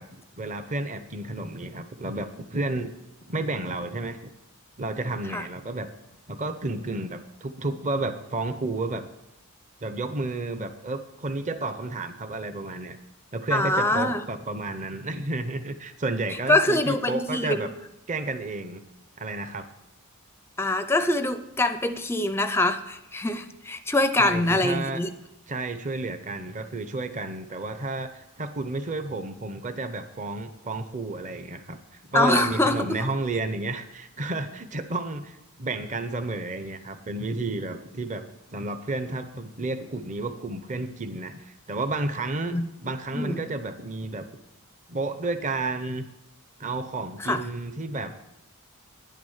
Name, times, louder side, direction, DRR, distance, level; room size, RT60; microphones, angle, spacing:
voice 1, 0.0-2.9 3.2-4.3 4.8-5.9 6.3-9.0 9.8-13.0 13.3-17.7 18.1-18.8 19.2-19.7 24.2-25.0 25.5-38.2 38.5-44.3 44.9-46.0 46.6-48.1, right 2 dB, 35° right, 9 dB, 0.7 m, -31 dB
voice 2, 13.5-14.2 16.5-17.7 20.6-25.1 32.1-33.1 42.5-42.6 43.1-43.4 47.2-47.4, left 2 dB, 10° left, 10 dB, 0.4 m, -24 dB
10.5 x 9.3 x 7.2 m, 0.94 s
head